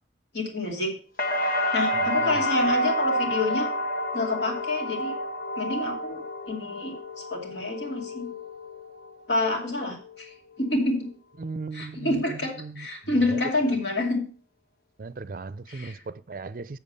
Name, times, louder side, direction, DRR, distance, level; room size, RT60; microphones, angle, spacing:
voice 1, 0.3-1.0 1.7-3.7 4.1-5.2 5.6-7.0 7.3-8.3 9.3-10.3 10.6-11.1 11.7-14.2 15.7-16.0, left 2 dB, 80° left, 2.5 m, -28 dB
sound 1, 1.2-9.1 9.5-10.1, equal, 50° left, 1.2 m, -29 dB
voice 2, 1.9-2.4 11.4-12.9 13.3-13.8 15.0-16.8, right 3 dB, 50° right, 0.4 m, -37 dB
7.1 x 7.0 x 5.4 m
head